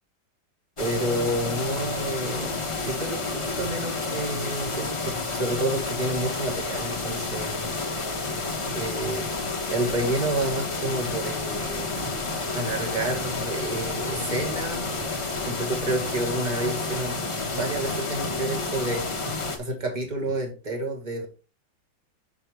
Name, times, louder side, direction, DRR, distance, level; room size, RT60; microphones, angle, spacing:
sound 1, 0.8-19.6, left 3 dB, 25° left, 0.7 m, -30 dB
voice 1, 0.8-7.7 8.7-9.3 9.7-11.9 12.5-14.9 15.5-19.1 19.6-21.3, right 1 dB, 25° right, 2 dB, 1.9 m, -29 dB
sound 2, 1.7-15.5, equal, 80° right, 4.3 m, -47 dB
sound 3, 10.5-20.4, right 4 dB, 45° right, 0.6 m, -45 dB
6.2 x 6.1 x 3.4 m, 0.31 s
omnidirectional pair, 2.0 m